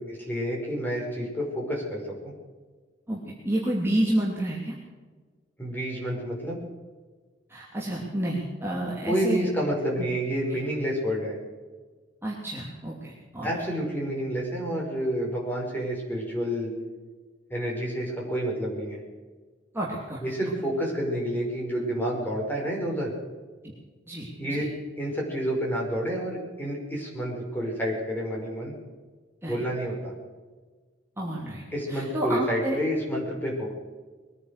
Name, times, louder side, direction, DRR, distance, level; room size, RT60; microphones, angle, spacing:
voice 1, 0.0-2.0 5.6-6.6 9.1-11.4 13.4-16.7 17.5-19.0 20.2-23.1 24.4-24.7 25.0-28.7 29.5-30.1 31.7-33.7, equal, 10° left, -2 dB, 5.3 m, -29 dB
voice 2, 3.4-4.7 7.5-9.5 10.0-10.1 10.5-10.6 12.2-13.5 19.7-20.2 23.6-23.7 24.1-24.6 29.4-29.6 31.2-32.7, right 1 dB, 15° right, -5 dB, 2.8 m, -30 dB
22.0 x 9.9 x 6.6 m, 1.4 s
head